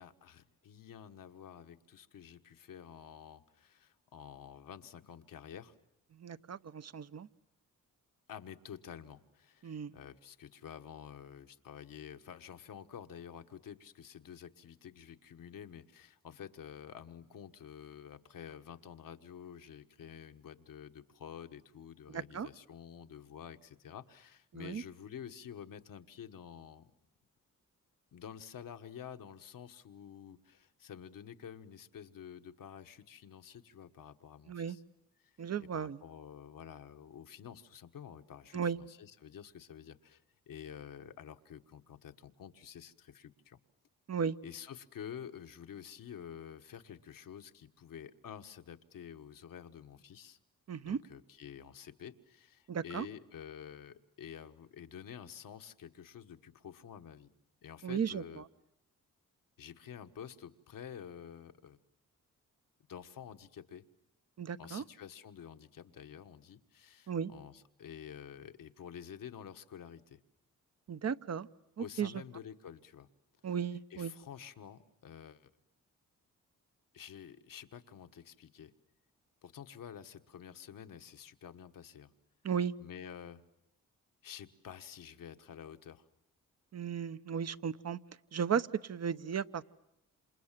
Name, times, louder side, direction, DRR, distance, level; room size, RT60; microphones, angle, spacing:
voice 1, 0.0-5.7 8.3-26.9 28.1-34.8 35.2-35.3 35.6-43.6 44.4-50.4 50.8-57.3 57.6-58.4 59.6-61.8 62.9-63.8 64.6-70.2 71.8-73.1 73.9-75.5 76.9-78.7 79.4-82.1 82.8-83.4 84.2-86.1, left 8 dB, 70° left, 7 dB, 1.5 m, -49 dB
voice 2, 6.2-7.3 9.6-9.9 22.1-22.5 24.5-24.8 34.5-34.8 35.4-36.0 38.5-38.8 44.1-44.4 50.7-51.0 52.7-53.1 57.8-58.2 64.4-64.8 67.1-67.3 70.9-71.5 71.8-72.1 73.4-74.1 82.4-82.7 86.7-88.0 88.3-89.6, right 7 dB, 50° right, 14 dB, 1.0 m, -35 dB
28.5 x 27.5 x 7.5 m, 0.81 s
supercardioid pair, 55°, 34 cm